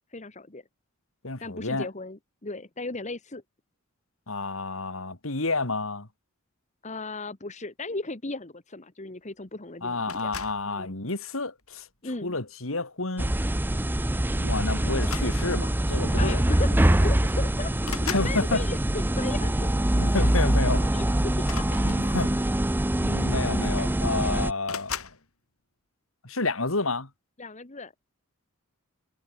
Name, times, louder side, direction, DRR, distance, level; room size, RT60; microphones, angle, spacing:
voice 1, 0.1-0.6 1.4-3.4 6.8-10.3 10.7-10.9 12.0-12.4 16.1-17.7 18.1-19.7 20.6-22.0 27.4-27.9, left 2 dB, 35° left, 1.5 m, -36 dB
voice 2, 1.2-1.9 4.3-6.1 9.8-11.9 12.2-13.3 14.4-16.4 18.1-18.6 20.0-20.9 21.8-22.3 23.0-25.1 26.2-27.1, left 3 dB, 70° left, 2.9 m, -30 dB
sound 1, 10.1-10.7 11.6-11.9 13.4-13.6 13.9-14.1 14.9-15.8 16.8-16.9 17.2-18.4 21.3-22.4 23.3-23.4 23.7-24.2 24.7-25.2, left 7 dB, 90° left, 7.4 m, -38 dB
sound 2, 13.2-24.5, right 1 dB, 10° right, 0.6 m, -24 dB
head